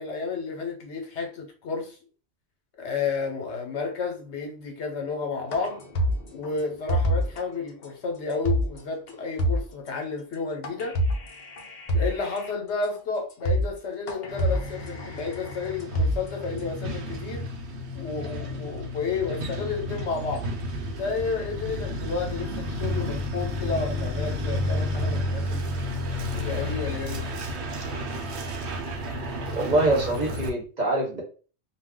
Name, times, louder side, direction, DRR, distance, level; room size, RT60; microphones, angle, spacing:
voice 1, 0.0-2.0 2.8-5.8 6.3-11.0 11.9-17.5 17.9-20.5 21.0-25.7 26.3-27.2, left 4 dB, 80° left, 1.0 m, -31 dB
sound 1, 5.5-7.4 7.8-7.9 8.3-8.8 9.1-9.2 9.4-9.9 10.6-12.5 12.9-13.0 13.3-13.8 14.1-16.6, equal, 50° left, 0.7 m, -27 dB
Truck, 14.3-30.5, left 1 dB, 75° right, 0.9 m, -31 dB
voice 2, 29.5-31.2, right 2 dB, 40° right, 0.9 m, -24 dB
2.3 x 2.2 x 3.6 m
omnidirectional pair, 1.2 m